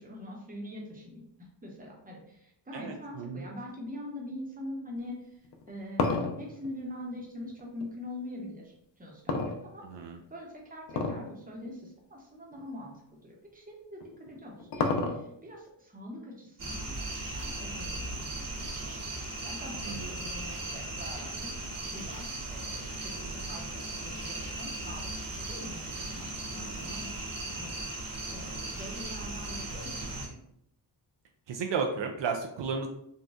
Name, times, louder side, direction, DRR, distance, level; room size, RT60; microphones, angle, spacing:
voice 1, 0.0-5.4 5.7-6.1 6.4-9.8 10.3-21.5 21.8-30.4, left 1 dB, 20° right, -1 dB, 0.8 m, -44 dB
voice 2, 2.7-3.5 9.8-10.2 19.8-20.1 26.7-27.0 31.5-32.9, right 5 dB, 75° right, 3 dB, 0.5 m, -34 dB
sound 1, 5.4-7.9 9.3-10.2 10.9-11.3 11.7-11.8 12.5-12.6 14.0-15.5, left 3 dB, 65° left, 0.6 m, -30 dB
sound 2, 16.6-30.3, right 2 dB, 45° right, 1.1 m, -37 dB
3.9 x 2.3 x 2.4 m, 0.74 s
wide cardioid pair, 105°, 45 cm